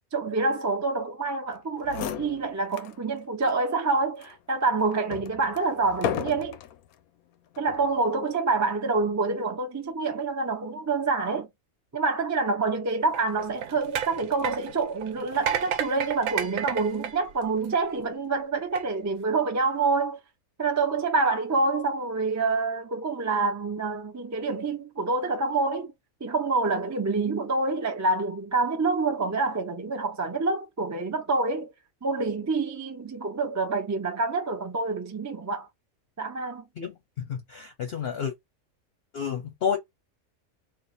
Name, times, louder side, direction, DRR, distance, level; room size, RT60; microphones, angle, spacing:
voice 1, 0.1-6.6 7.6-11.5 11.9-20.2 20.6-25.9 26.2-31.7 32.0-35.7 36.2-36.7, right 3 dB, 25° right, 0.4 m, -27 dB
sound 1, 1.5-1.6 1.8-3.0 3.4-3.5 4.2-6.8 7.6-7.9, left 10 dB, 85° left, 1.0 m, -35 dB
sound 2, 13.1-18.0 18.6-18.8, right 8 dB, 70° right, 1.0 m, -32 dB
voice 2, 37.3-38.3 39.1-39.8, left 7 dB, 55° left, 0.8 m, -30 dB
3.3 x 2.4 x 4.2 m
omnidirectional pair, 1.5 m